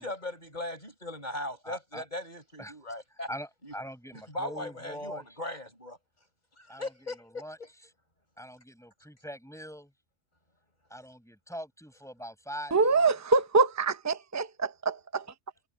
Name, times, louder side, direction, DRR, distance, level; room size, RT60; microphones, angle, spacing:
voice 1, 0.0-3.3 3.6-3.7 4.1-6.0 6.6-7.7, left 1 dB, 35° left, 7.0 m, -38 dB
voice 2, 1.6-2.0 2.6-2.7 3.3-5.2 6.7-6.9 7.2-7.6 8.4-9.9 10.9-13.1, equal, ahead, 7.7 m, -42 dB
voice 3, 12.7-15.2, right 4 dB, 15° right, 0.9 m, -25 dB
omnidirectional pair, 1.3 m